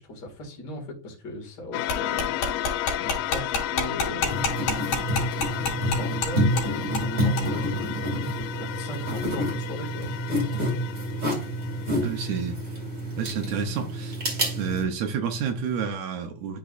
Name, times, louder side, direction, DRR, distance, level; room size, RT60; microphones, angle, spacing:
voice 1, 0.0-2.3 3.0-4.7 5.8-10.1, left 1 dB, 35° left, 2.2 m, -37 dB
sound 1, 1.7-12.4, left 12 dB, 85° left, 2.3 m, -33 dB
sound 2, 1.9-6.3 6.6-6.7 6.9-7.1 7.4-7.5, left 3 dB, 65° left, 3.2 m, -27 dB
sound 3, 4.2-14.8, equal, 25° right, 1.6 m, -28 dB
voice 2, 12.0-12.6 13.2-14.2 14.6-16.6, right 6 dB, 75° right, 1.7 m, -29 dB
11.0 x 4.1 x 2.5 m
omnidirectional pair, 4.1 m